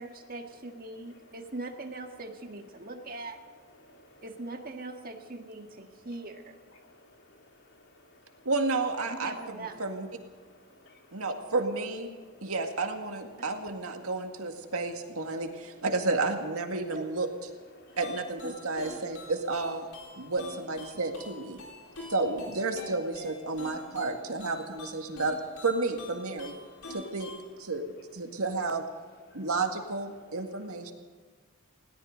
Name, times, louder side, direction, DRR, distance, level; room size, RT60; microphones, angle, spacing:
voice 1, 0.0-3.4 4.2-6.5 9.0-9.8 13.4-13.5 16.9-17.1 18.4-18.5 22.7-22.8, right 2 dB, 40° right, 4 dB, 1.7 m, -41 dB
voice 2, 3.8-4.2 6.8-8.5 10.4-11.3 12.2-12.5 17.8-18.0 20.2-20.3 21.7-22.1 25.0-25.2 26.6-27.0 29.3-29.5, left 1 dB, 55° left, 1 dB, 2.9 m, -59 dB
voice 3, 8.5-10.1 11.1-12.1 12.4-17.3 18.0-19.9 20.2-21.6 22.1-25.4 25.6-26.5 26.9-27.3 27.6-27.8 28.1-28.8 29.3-30.9, right 3 dB, 85° right, 4 dB, 2.0 m, -31 dB
sound 1, 17.9-27.5, left 2 dB, 80° left, 4.6 m, -47 dB
20.5 x 18.0 x 3.9 m, 1.5 s
head